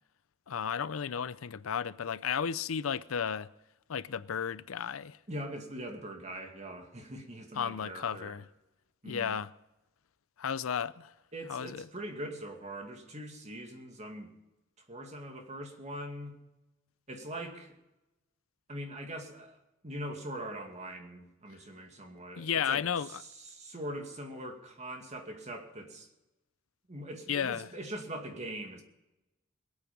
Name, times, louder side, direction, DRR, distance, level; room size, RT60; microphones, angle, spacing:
voice 1, 0.5-3.5 3.9-5.2 7.5-8.4 9.0-9.5 10.4-11.1 11.5-11.9 22.4-23.2 27.3-27.7, left 7 dB, 90° left, 0.5 m, -33 dB
voice 2, 5.3-8.4 9.0-9.4 11.3-14.3 14.8-16.4 17.1-17.8 18.7-19.6 19.8-22.8 23.1-26.1 26.9-28.8, right 1 dB, 35° right, 2.3 m, -42 dB
22.0 x 8.8 x 5.3 m
head